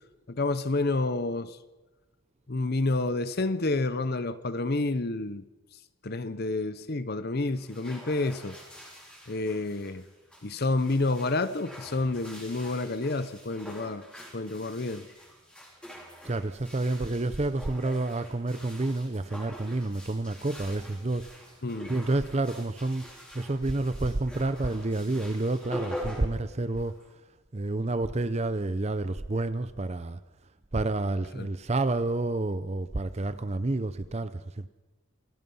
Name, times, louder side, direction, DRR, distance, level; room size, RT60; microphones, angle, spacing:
voice 1, 0.3-1.6 2.5-5.4 6.0-8.6 9.3-10.1 10.4-14.0 14.3-15.1 21.6-21.9 31.4-31.5, left 2 dB, 45° left, 0.8 m, -29 dB
sound 1, 7.5-27.1, equal, 5° left, 4.7 m, -45 dB
voice 2, 16.2-21.3 21.9-23.0 23.3-27.0 27.5-30.2 30.7-34.7, right 2 dB, 30° right, 0.6 m, -29 dB
27.5 x 18.5 x 5.5 m
head